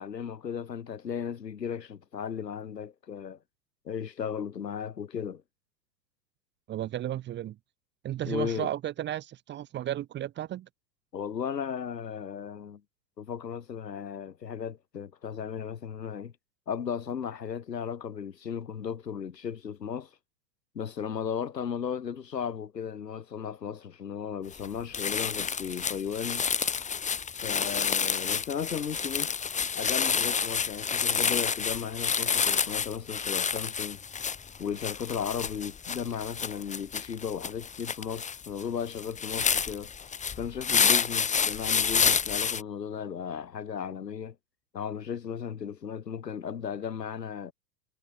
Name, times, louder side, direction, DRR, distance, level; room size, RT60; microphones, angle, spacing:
voice 1, 0.0-3.4 3.9-5.4 8.2-8.7 11.1-12.8 13.2-16.3 16.7-20.1 20.7-26.5 27.4-29.3 29.7-34.0 34.6-39.9 40.4-44.4 44.7-47.5, left 7 dB, 80° left, 2.2 m, -35 dB
voice 2, 6.7-7.6 8.0-10.7, right 12 dB, 20° right, 1.0 m, -34 dB
sound 1, 24.5-24.7 24.9-42.6, left 6 dB, 15° left, 1.8 m, -29 dB
figure-of-eight pair, 95°, 49 cm